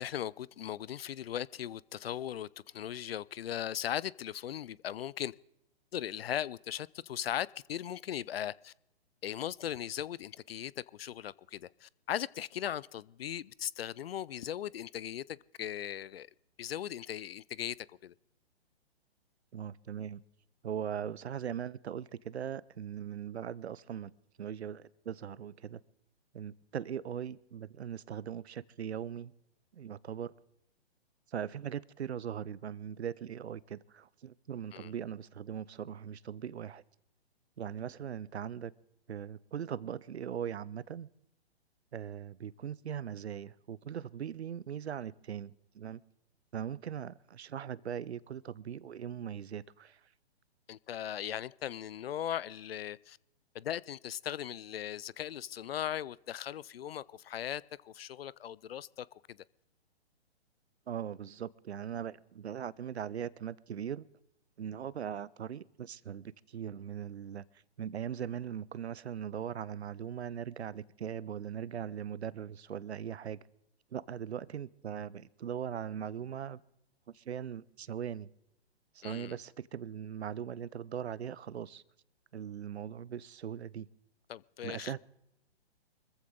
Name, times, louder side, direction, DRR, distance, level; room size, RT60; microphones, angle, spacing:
voice 1, 0.0-5.3 5.9-8.7 9.2-16.3 16.6-17.8 18.0-18.1 34.7-34.9 50.7-53.2 53.5-59.4 79.0-79.4 84.3-84.9, left 10 dB, 65° left, 0.5 m, -38 dB
voice 2, 19.5-20.2 20.6-24.1 24.4-25.8 26.3-29.3 29.7-30.3 31.3-36.8 37.6-38.7 39.1-41.1 41.9-46.0 46.5-50.0 60.9-64.0 64.6-67.4 67.8-73.4 73.9-76.6 77.1-78.3 78.9-81.8 82.3-83.9 84.6-85.0, right 8 dB, 75° right, 0.7 m, -40 dB
24.5 x 14.5 x 3.8 m
hypercardioid pair, 135°, 32 cm